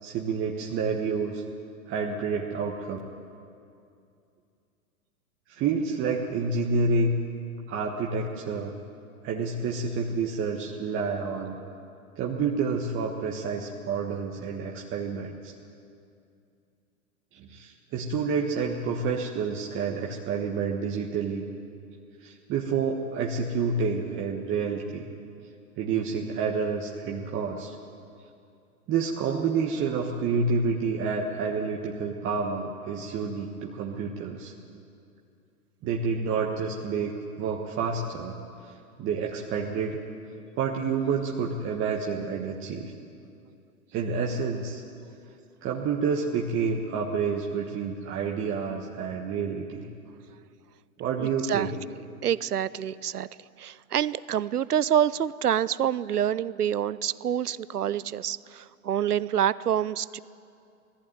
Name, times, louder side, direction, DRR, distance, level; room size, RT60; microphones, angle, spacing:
voice 1, 0.0-1.4 1.9-3.0 5.5-7.1 7.7-8.7 9.2-11.6 12.2-15.5 17.3-21.5 22.2-25.0 25.8-27.8 28.9-34.5 35.8-38.4 38.6-38.7 39.0-40.0 40.6-42.9 43.9-44.8 45.6-49.9 51.0-51.8, right 5 dB, 25° right, 0 dB, 1.4 m, -29 dB
voice 2, 51.2-51.7 52.2-53.3 53.6-60.2, right 10 dB, 85° right, 19 dB, 0.7 m, -27 dB
19.0 x 14.5 x 9.4 m, 2.5 s
figure-of-eight pair, 110°, 45 cm